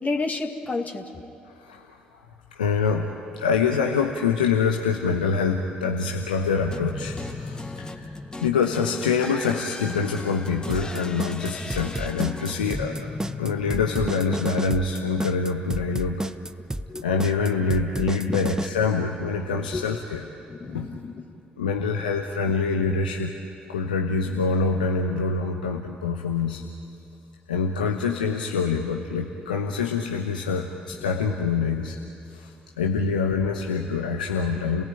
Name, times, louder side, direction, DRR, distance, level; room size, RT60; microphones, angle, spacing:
voice 1, 0.0-1.0 16.9-17.0 18.3-18.4 19.7-19.8 20.5-21.2, left 3 dB, 35° left, 3 dB, 2.2 m, -30 dB
voice 2, 1.6-2.2 2.5-13.0 13.4-16.2 17.0-20.2 20.7-20.9 21.6-23.3 23.7-26.6 27.5-32.0 32.3-34.8, left 5 dB, 85° left, 2 dB, 1.0 m, -25 dB
sound 1, 6.7-14.9, left 2 dB, 15° left, 1.5 m, -37 dB
sound 2, 10.7-18.7, right 1 dB, 15° right, 0.9 m, -30 dB
30.0 x 18.0 x 9.1 m, 2.6 s
figure-of-eight pair, 45°, 5 cm